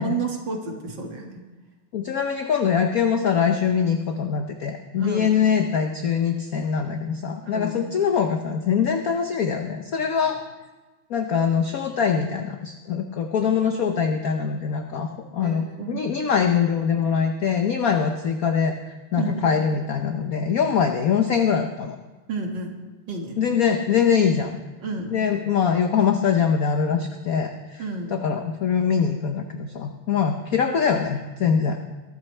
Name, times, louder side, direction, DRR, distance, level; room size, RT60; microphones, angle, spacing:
voice 1, 0.0-1.4 5.0-5.4 7.4-7.9 15.4-16.0 19.2-19.5 22.3-22.8 23.1-23.4 24.8-25.1 27.8-28.1, right 3 dB, 55° right, 1 dB, 2.4 m, -31 dB
voice 2, 1.9-10.4 11.1-15.1 15.3-22.0 23.4-24.5 25.1-27.8 28.2-31.8, left 7 dB, 60° left, 5 dB, 1.0 m, -23 dB
22.5 x 13.0 x 3.3 m, 1.2 s
omnidirectional pair, 2.4 m